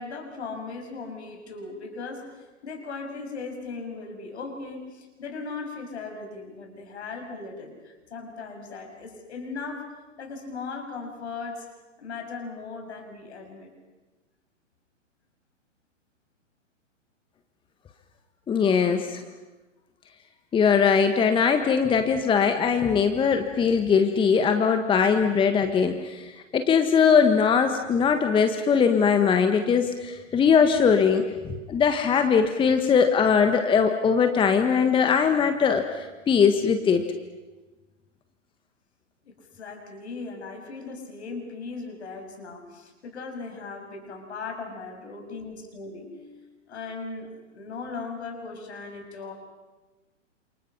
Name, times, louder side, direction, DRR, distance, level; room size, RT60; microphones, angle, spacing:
voice 1, 0.0-9.9 10.2-11.7 12.0-13.7 39.2-49.3, left 4 dB, 60° left, 4 dB, 7.0 m, -38 dB
voice 2, 18.5-19.2 20.5-37.0, left 6 dB, 15° left, 7 dB, 1.4 m, -21 dB
29.5 x 28.0 x 5.9 m, 1.2 s
figure-of-eight pair, 115°, 37 cm